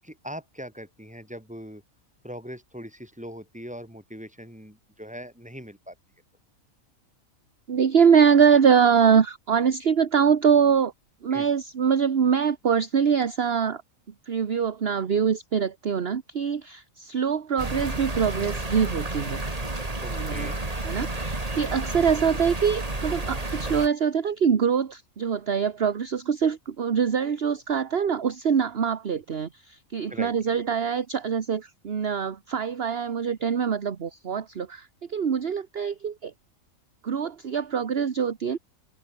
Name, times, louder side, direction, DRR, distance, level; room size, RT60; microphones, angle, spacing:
voice 1, 0.0-1.8 2.2-6.0 11.3-11.5 20.0-20.6 30.1-30.6, equal, 5° right, 7.8 m, -40 dB
voice 2, 7.7-10.9 11.2-13.8 14.3-19.4 20.1-20.5 20.8-36.3 37.0-38.6, right 7 dB, 50° right, 1.4 m, -24 dB
sound 1, 17.6-23.9, right 2 dB, 25° right, 2.7 m, -31 dB
omnidirectional pair, 1.4 m